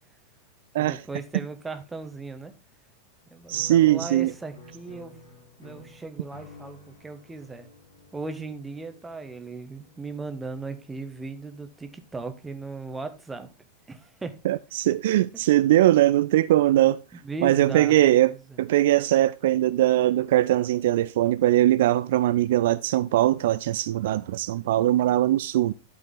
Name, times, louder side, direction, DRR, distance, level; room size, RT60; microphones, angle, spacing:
voice 1, 0.8-2.5 3.3-5.2 5.6-7.7 8.1-13.5 13.9-14.4 17.2-18.0 18.3-18.4, right 3 dB, 10° right, 1.4 m, -37 dB
sound 1, 3.5-11.8, left 1 dB, 65° left, 3.6 m, -51 dB
voice 2, 3.5-4.3 14.4-17.0 17.4-25.7, right 14 dB, 55° right, 0.3 m, -21 dB
12.0 x 5.4 x 3.8 m
figure-of-eight pair, 90°, 0 cm